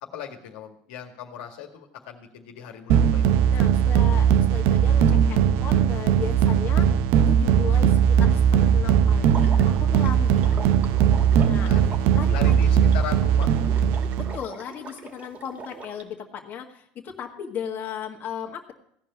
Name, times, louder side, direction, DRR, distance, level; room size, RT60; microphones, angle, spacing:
voice 1, 0.0-3.3 11.6-12.0 12.3-13.5, left 8 dB, 75° left, 3 dB, 1.9 m, -38 dB
sound 1, 2.9-14.4, right 8 dB, 60° right, 0.7 m, -19 dB
voice 2, 3.5-10.6 11.5-11.7 12.1-12.7 14.2-18.7, left 8 dB, 40° left, 1 dB, 1.8 m, -36 dB
Water / Liquid, 9.3-16.0, right 4 dB, 35° right, 2.4 m, -41 dB
16.0 x 5.4 x 9.6 m, 0.70 s
supercardioid pair, 100°, 5 cm